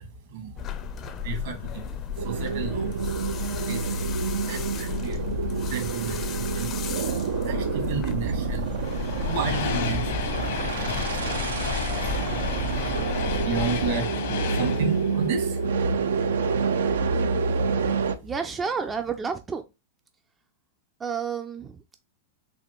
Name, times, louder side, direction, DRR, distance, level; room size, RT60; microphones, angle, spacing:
voice 1, 0.0-3.0 3.3-4.2 4.4-10.4 10.8-16.3 16.8-16.9 17.3-17.7 18.2-18.3, right 5 dB, 65° right, 1.6 m, -35 dB
sound 1, 0.6-13.9, left 8 dB, 35° left, 0.5 m, -34 dB
sound 2, 2.2-18.2, right 5 dB, 80° right, 0.4 m, -28 dB
sound 3, 8.8-16.3, left 4 dB, 75° left, 1.1 m, -32 dB
voice 2, 18.2-19.6 21.0-22.0, right 6 dB, 20° right, 0.4 m, -31 dB
4.1 x 2.8 x 3.0 m
hypercardioid pair, 115°, 0 cm